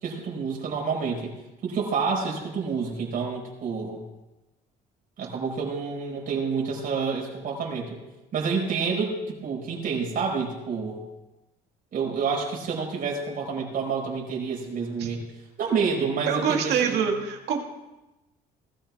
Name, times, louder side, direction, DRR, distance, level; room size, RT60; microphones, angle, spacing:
voice 1, 0.0-1.4 1.6-4.0 5.2-8.0 8.3-11.0 11.9-15.2 15.6-17.1, right 5 dB, 55° right, 0 dB, 4.9 m, -28 dB
voice 2, 16.3-17.6, right 7 dB, 80° right, 2 dB, 2.2 m, -25 dB
19.5 x 13.0 x 3.6 m, 1.0 s
cardioid pair, 110°, 17 cm